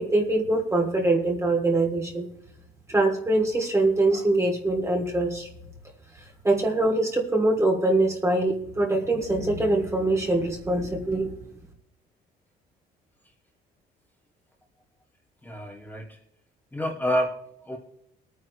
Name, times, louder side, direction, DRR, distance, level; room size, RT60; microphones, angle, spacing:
voice 1, 0.0-2.3 2.9-5.5 6.1-11.3, right 2 dB, 15° right, 1 dB, 2.9 m, -23 dB
voice 2, 15.4-16.2 16.7-17.8, equal, 10° left, -1 dB, 2.5 m, -29 dB
21.5 x 9.5 x 3.2 m, 0.78 s
cardioid pair, 110°, 17 cm